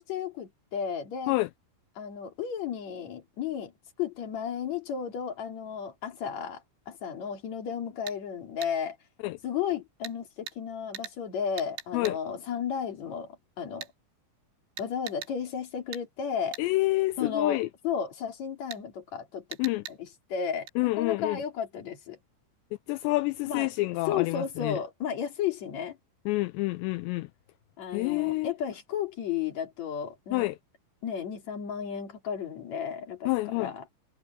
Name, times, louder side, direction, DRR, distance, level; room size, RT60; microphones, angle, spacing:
voice 1, 0.0-1.4 2.0-3.7 4.0-9.0 9.4-13.9 14.8-16.6 17.2-22.2 23.5-23.7 24.1-26.0 27.8-30.5 31.0-33.9, left 7 dB, 45° left, 3.7 m, -33 dB
sound 1, 8.1-8.2 8.6-8.7 10.0-10.2 10.5-10.6 10.9-11.2 11.6-12.2 13.8-13.9 14.8-15.3 15.9-16.1 16.5-16.7 18.7-18.8 19.5-20.0 20.7-20.8, right 10 dB, 80° right, 4.4 m, -41 dB
voice 2, 16.6-17.7 19.6-19.8 20.8-21.4 22.9-24.8 26.3-27.3 27.9-28.5 30.3-30.6 33.3-33.7, left 20 dB, 85° left, 2.7 m, -28 dB
omnidirectional pair, 5.2 m